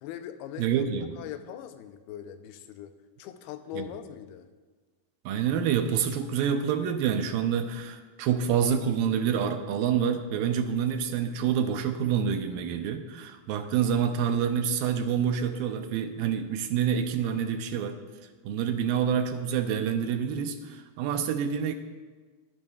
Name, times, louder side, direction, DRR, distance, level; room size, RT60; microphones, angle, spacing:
voice 1, 0.0-0.9 1.2-4.5, left 11 dB, 85° left, 9 dB, 2.6 m, -41 dB
voice 2, 0.6-1.2 3.8-3.9 5.3-18.0 18.4-21.7, right 8 dB, 75° right, 7 dB, 2.3 m, -27 dB
22.0 x 10.5 x 2.4 m, 1.3 s
omnidirectional pair, 4.4 m